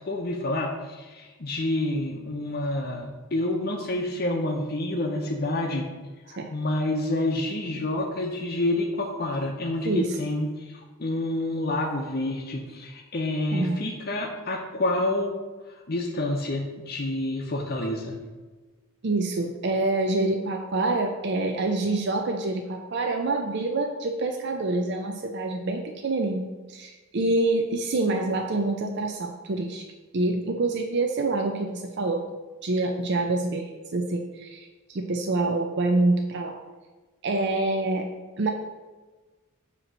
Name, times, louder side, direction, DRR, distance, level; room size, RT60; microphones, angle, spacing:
voice 1, 0.1-5.9 6.2-15.3 15.7-18.2, left 1 dB, 45° left, -1 dB, 0.7 m, -28 dB
voice 2, 9.9-10.2 13.5-13.8 19.0-29.9 30.1-32.3 32.6-36.6 37.2-38.1 38.4-38.5, right 2 dB, 50° right, 4 dB, 0.5 m, -26 dB
7.7 x 3.0 x 6.2 m, 1.3 s
head